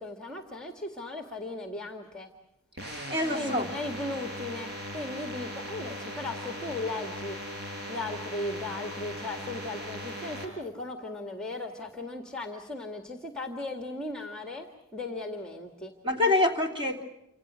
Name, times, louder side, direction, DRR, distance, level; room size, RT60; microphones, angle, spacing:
voice 1, 0.0-2.3 3.3-7.4 7.9-15.9, left 2 dB, 5° left, 4 dB, 1.8 m, -37 dB
sound 1, 2.8-10.5, equal, 45° right, 5.1 m, -39 dB
voice 2, 2.9-3.7 16.0-17.0, left 2 dB, 25° right, 2 dB, 3.2 m, -26 dB
29.0 x 26.5 x 6.3 m, 0.85 s
head